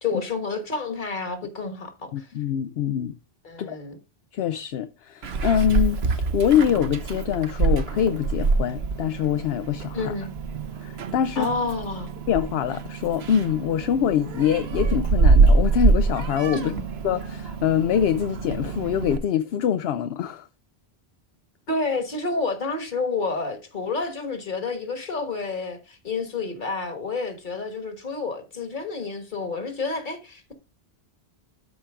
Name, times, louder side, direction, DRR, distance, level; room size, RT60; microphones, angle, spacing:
voice 1, 0.0-2.3 3.4-4.0 9.9-10.3 11.3-12.1 16.5-16.9 21.7-30.5, left 3 dB, 50° left, 1.6 m, -29 dB
voice 2, 2.1-3.2 3.6-3.8 4.3-6.1 6.3-10.1 10.8-11.5 12.3-16.7 17.0-20.5, left 9 dB, 75° left, 0.8 m, -24 dB
Meow, 5.2-19.2, right 4 dB, 75° right, 1.2 m, -25 dB
13.0 x 4.4 x 3.5 m
omnidirectional pair, 1.1 m